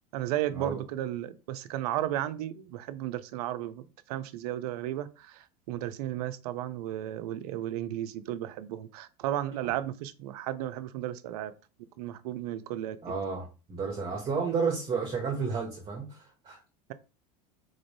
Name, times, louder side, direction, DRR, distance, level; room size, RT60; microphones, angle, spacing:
voice 1, 0.1-11.5 12.0-13.0, right 12 dB, 70° right, 0.5 m, -34 dB
voice 2, 13.0-16.6, right 5 dB, 25° right, 1.0 m, -32 dB
3.9 x 2.5 x 3.2 m
hypercardioid pair, 85°, 20 cm